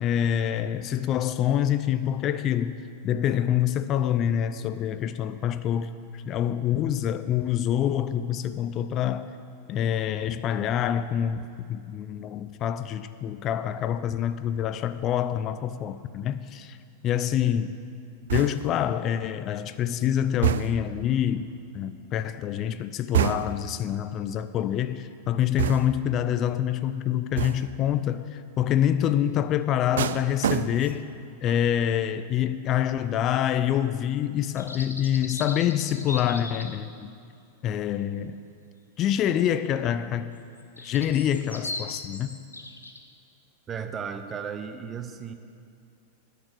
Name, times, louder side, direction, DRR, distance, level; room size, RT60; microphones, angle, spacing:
voice 1, 0.0-2.8 3.0-9.3 9.7-16.8 17.0-17.7 18.3-21.4 21.7-31.1 31.4-37.1 37.6-38.4 39.0-40.4 40.8-42.3, left 10 dB, 35° left, 12 dB, 0.4 m, -26 dB
sound 1, 18.3-18.9 20.4-21.0 23.1-23.8 25.6-26.1 27.4-27.8 30.0-31.1 31.5-31.8, right 10 dB, 60° right, 0.3 m, -28 dB
sound 2, 34.4-36.8 40.4-43.0, left 2 dB, 85° left, 0.8 m, -38 dB
voice 2, 43.7-45.3, right 7 dB, 25° right, 8 dB, 0.7 m, -35 dB
9.5 x 6.8 x 7.8 m, 2.3 s
figure-of-eight pair, 90°, 0 cm